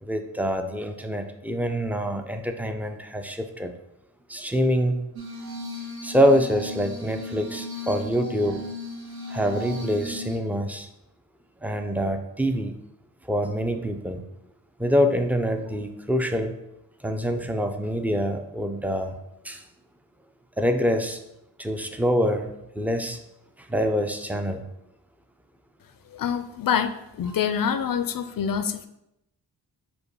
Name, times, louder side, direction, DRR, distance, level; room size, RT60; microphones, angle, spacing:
voice 1, 0.0-3.7 4.3-5.0 6.0-8.6 9.3-10.9 11.6-12.8 13.3-14.2 14.8-16.5 17.0-19.2 19.4-19.6 20.6-21.2 21.6-23.2 23.7-24.6 27.3-27.4, equal, 5° right, 6 dB, 0.5 m, -25 dB
Glass, 5.2-10.4, left 2 dB, 60° right, 1.1 m, -36 dB
voice 2, 26.1-28.9, left 7 dB, 50° left, 10 dB, 0.5 m, -26 dB
5.2 x 2.2 x 4.6 m, 0.84 s
cardioid pair, 45°, 44 cm